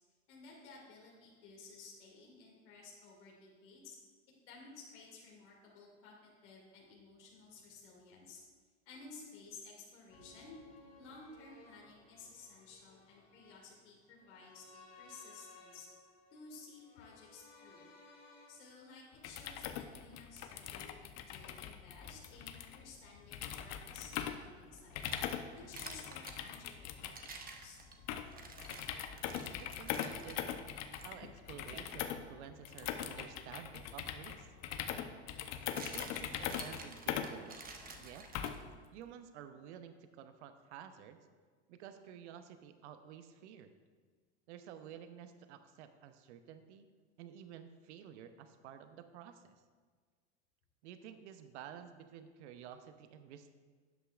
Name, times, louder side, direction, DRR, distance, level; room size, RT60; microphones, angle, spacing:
voice 1, 0.3-4.0 4.4-8.4 8.9-10.6 11.0-15.9 16.3-17.9 18.5-27.8, left 4 dB, 80° left, -3 dB, 2.4 m, -55 dB
sound 1, 10.1-20.2 20.5-20.6, left 3 dB, 25° left, 2.0 m, -61 dB
sound 2, 19.1-38.8, left 9 dB, 50° left, 0.8 m, -42 dB
sound 3, 24.8-26.4 27.0-30.4 30.9-31.1 31.7-31.9 34.1-34.2 35.4-38.9, right 4 dB, 25° right, 1.0 m, -51 dB
voice 2, 29.4-30.7 31.0-34.5 35.7-37.7 38.0-38.3 38.9-41.3 41.7-43.7 44.5-46.9 47.2-49.5 50.8-53.5, right 9 dB, 75° right, 9 dB, 0.8 m, -52 dB
12.5 x 8.3 x 2.4 m, 1.5 s
hypercardioid pair, 100°, 35 cm